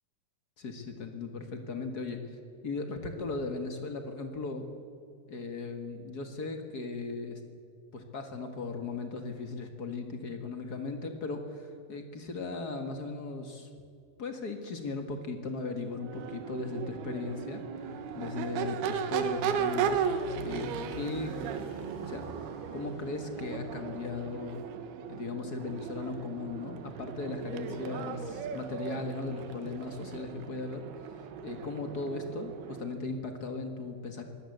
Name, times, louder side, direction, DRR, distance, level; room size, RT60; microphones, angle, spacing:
voice 1, 0.6-2.2 2.6-4.6 5.3-7.4 7.9-13.7 14.2-20.0 20.4-21.6 22.0-22.2 22.7-24.6 25.1-30.9 31.4-34.2, left 3 dB, 45° left, 6 dB, 1.3 m, -37 dB
Crowd / Race car auto racing / Accelerating revving vroom, 15.9-33.0, right 7 dB, 85° right, 3.2 m, -36 dB
Motorcycle, 17.9-23.8, equal, 90° left, 7.1 m, -47 dB
23.0 x 17.0 x 7.9 m, 2.4 s
omnidirectional pair, 4.4 m